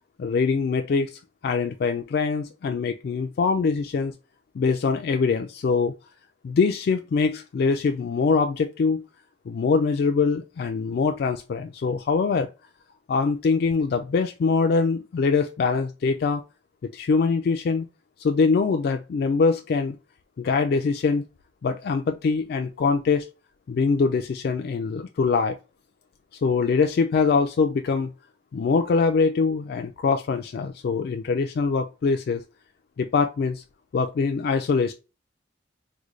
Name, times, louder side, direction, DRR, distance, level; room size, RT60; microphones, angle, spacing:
voice 1, 0.2-4.1 4.5-5.9 6.4-9.0 9.5-12.5 13.1-16.4 16.8-17.9 18.2-20.0 20.4-21.2 21.6-23.3 23.7-25.6 26.4-28.1 28.5-32.4 33.0-33.6 33.9-34.9, left 4 dB, 55° left, 0.3 m, -23 dB
3.7 x 2.2 x 3.0 m
head